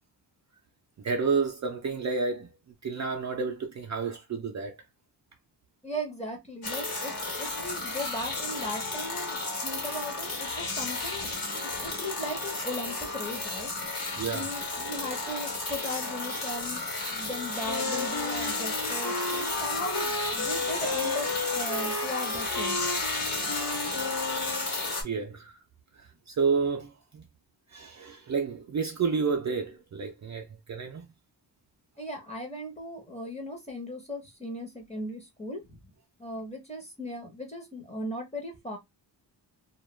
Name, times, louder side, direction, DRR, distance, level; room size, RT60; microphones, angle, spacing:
voice 1, 1.0-2.5 2.8-4.7 14.2-14.5 16.3-16.4 25.0-25.6 26.0-27.2 27.7-31.1, right 5 dB, 40° right, 0.4 m, -30 dB
voice 2, 5.8-11.3 11.8-13.7 14.2-22.8 32.0-35.8 36.2-38.8, left 1 dB, 15° left, 0.7 m, -37 dB
sound 1, 6.6-25.0, left 2 dB, 50° left, 1.1 m, -33 dB
Wind instrument woodwind instrument, 17.6-24.8, left 3 dB, 70° left, 0.8 m, -34 dB
2.3 x 2.2 x 3.0 m
wide cardioid pair, 165°, 44 cm